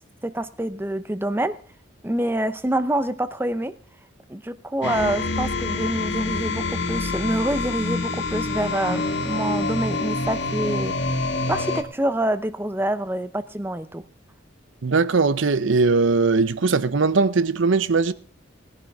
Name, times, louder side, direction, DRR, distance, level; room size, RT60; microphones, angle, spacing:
voice 1, 0.2-1.6 2.0-3.8 4.3-10.9 11.5-14.1, right 1 dB, 10° right, 0.6 m, -26 dB
sound 1, 4.8-11.8, left 3 dB, 55° left, 1.4 m, -26 dB
voice 2, 14.8-18.1, right 4 dB, 70° right, 0.7 m, -20 dB
20.0 x 10.5 x 3.5 m
head